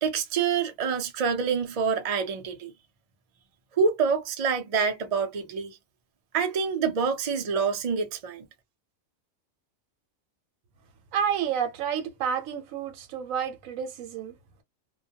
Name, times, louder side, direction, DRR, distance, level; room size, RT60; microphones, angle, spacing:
voice 1, 0.0-2.7 3.7-5.8 6.3-8.5, right 5 dB, 55° right, 0.4 m, -26 dB
voice 2, 11.1-14.3, right 8 dB, 90° right, 1.0 m, -30 dB
2.2 x 2.1 x 2.7 m
omnidirectional pair, 1.3 m